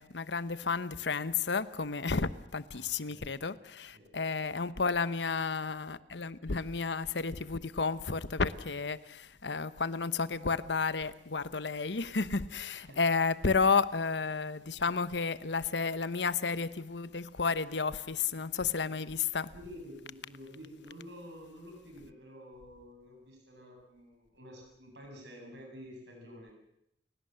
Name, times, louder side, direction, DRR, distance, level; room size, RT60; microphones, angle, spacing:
voice 1, 0.0-19.5, left 4 dB, 80° left, 1.0 m, -32 dB
voice 2, 2.7-3.3 3.9-4.3 12.7-13.0 19.5-26.5, equal, 80° right, 7.4 m, -50 dB
29.5 x 17.5 x 7.8 m
head